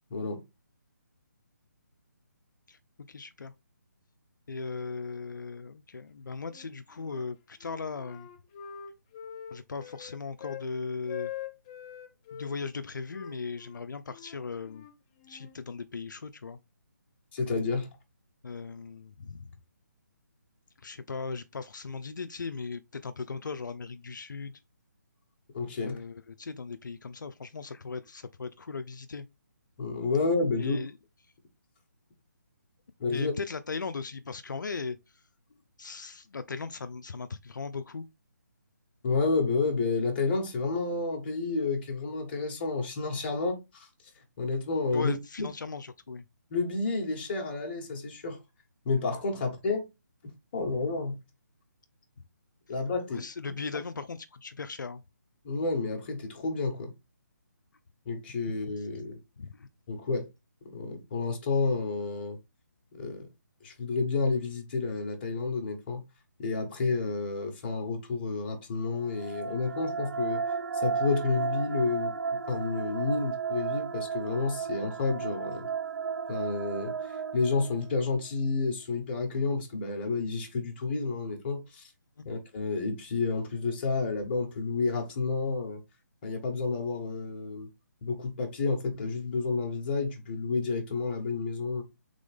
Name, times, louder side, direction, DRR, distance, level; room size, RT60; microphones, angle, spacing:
voice 1, 0.1-0.4 17.3-17.9 25.5-26.0 29.8-30.8 33.0-33.3 39.0-43.9 44.4-45.1 46.5-48.4 48.8-49.9 50.5-51.2 52.7-53.2 55.4-56.9 58.0-59.2 59.9-60.3 60.7-62.4 63.0-63.3 63.6-66.0 66.4-70.4 70.7-72.1 72.5-75.7 76.3-76.9 77.3-81.9 82.2-85.8 86.2-87.7 88.0-91.8, left 3 dB, 35° left, 1.3 m, -30 dB
voice 2, 3.1-3.5 4.5-8.3 9.5-11.3 12.3-14.9 15.3-16.6 18.4-19.5 20.8-24.6 25.8-29.3 30.6-30.9 33.1-35.0 35.8-38.0 44.9-46.2 53.1-55.0 59.4-59.7, left 4 dB, 90° left, 0.4 m, -38 dB
Wind instrument woodwind instrument, 6.4-7.3 7.6-10.7 11.0-12.5 13.1-15.6, left 10 dB, 20° left, 0.4 m, -44 dB
sound 1, 69.0-78.2, right 6 dB, 85° right, 0.4 m, -34 dB
3.8 x 3.5 x 3.4 m
figure-of-eight pair, 155°, 10 cm